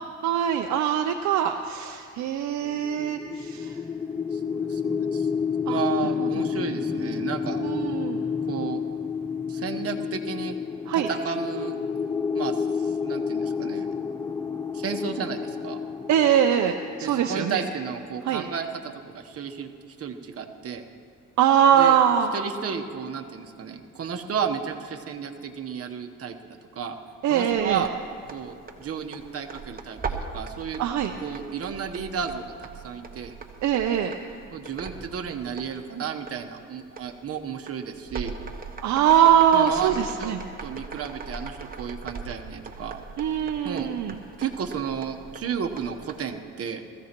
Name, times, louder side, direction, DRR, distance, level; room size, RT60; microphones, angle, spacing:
voice 1, 0.2-3.7 5.7-5.8 6.2-6.4 7.6-8.2 10.9-11.1 16.1-17.6 18.3-18.4 21.4-22.3 27.2-27.8 30.8-31.1 33.6-34.1 38.8-40.4 43.2-44.2, right 9 dB, 70° right, 5 dB, 0.6 m, -22 dB
sound 1, 2.8-17.8, left 6 dB, 10° left, 0.3 m, -30 dB
voice 2, 4.3-5.3 5.6-7.6 8.5-8.8 9.5-10.6 10.9-11.7 12.3-14.0 14.7-15.8 17.0-18.8 19.1-19.7 20.0-20.8 21.7-22.0 22.3-26.4 26.7-27.0 27.3-27.9 28.3-30.8 31.2-33.3 34.5-38.4 39.5-43.0 43.6-43.9 44.4-46.8, right 7 dB, 50° right, 4 dB, 1.1 m, -33 dB
sound 2, 27.5-46.4, right 4 dB, 30° right, 1.2 m, -40 dB
20.5 x 15.0 x 3.0 m, 2.3 s
cardioid pair, 90°, 30 cm